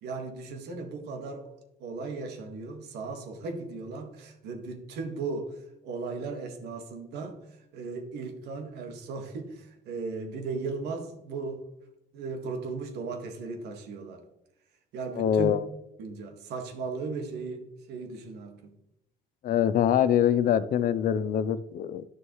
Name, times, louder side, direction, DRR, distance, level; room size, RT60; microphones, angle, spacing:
voice 1, 0.0-7.4 7.7-11.6 12.1-14.2 14.9-15.5 16.0-18.8, right 4 dB, 80° right, 1.6 m, -37 dB
voice 2, 15.2-15.6 19.4-22.1, left 9 dB, 55° left, 0.6 m, -24 dB
11.0 x 6.4 x 3.1 m
cardioid pair, 110°, 17 cm